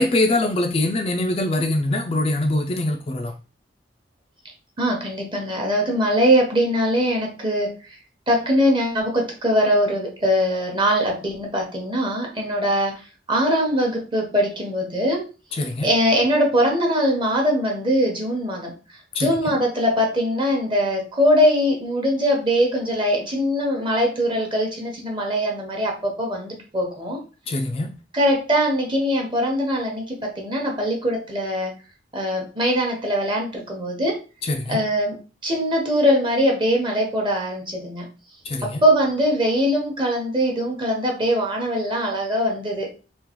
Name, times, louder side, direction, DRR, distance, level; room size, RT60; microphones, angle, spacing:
voice 1, 0.0-3.3 15.5-15.9 19.1-19.5 27.5-27.9 34.4-34.8 38.4-38.8, left 1 dB, 30° left, 0.3 m, -23 dB
voice 2, 4.8-7.7 8.3-15.2 15.8-18.7 19.2-27.2 28.1-31.7 32.1-34.2 34.7-35.2 35.4-38.1 38.6-42.9, equal, 25° right, 0.9 m, -22 dB
3.7 x 2.4 x 2.9 m
head